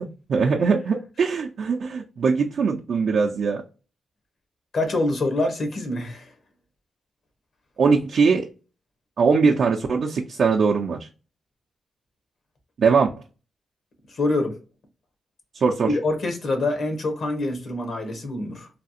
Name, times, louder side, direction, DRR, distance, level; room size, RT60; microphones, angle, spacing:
voice 1, 0.0-3.6 7.8-8.4 9.2-11.1 12.8-13.1 15.5-15.9, right 5 dB, 65° right, 0.5 m, -21 dB
voice 2, 4.7-6.3 14.1-14.6 15.9-18.7, left 2 dB, 65° left, 1.2 m, -25 dB
3.3 x 2.4 x 2.7 m
cardioid pair, 75°, 0 cm